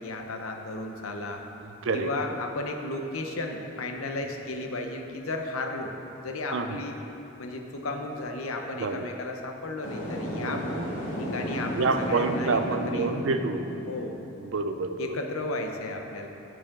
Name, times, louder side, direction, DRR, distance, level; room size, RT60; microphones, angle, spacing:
voice 1, 0.0-1.5 1.9-6.0 6.2-7.0 7.4-10.7 11.2-13.1 13.9-14.1 15.0-16.3, left 2 dB, 90° left, 3 dB, 0.8 m, -34 dB
sound 1, 9.8-14.0, equal, 60° left, 2.0 m, -33 dB
voice 2, 11.8-13.7 14.4-15.1, right 3 dB, 65° right, 8 dB, 0.5 m, -27 dB
13.5 x 4.9 x 3.7 m, 2.9 s
head